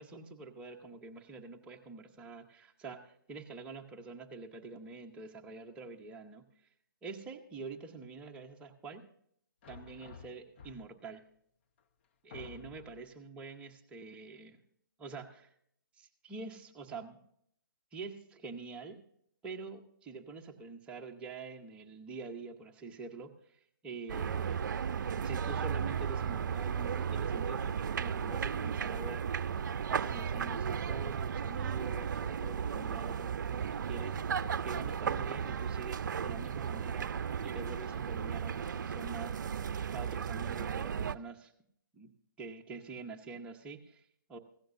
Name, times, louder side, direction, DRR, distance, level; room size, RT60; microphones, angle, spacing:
voice 1, 0.0-6.5 7.0-9.0 9.7-11.2 12.2-14.6 15.0-15.5 16.0-17.2 17.9-19.0 19.4-24.6 25.2-29.5 29.9-39.6 39.9-41.5 41.9-44.4, right 4 dB, 10° right, 2 dB, 0.8 m, -46 dB
sound 1, 9.6-11.1 11.8-11.9 12.3-13.1, left 6 dB, 35° left, 0.6 m, -52 dB
sound 2, 24.1-41.2, right 7 dB, 60° right, 0.5 m, -35 dB
16.0 x 14.0 x 2.6 m, 0.66 s
hypercardioid pair, 155°, 11 cm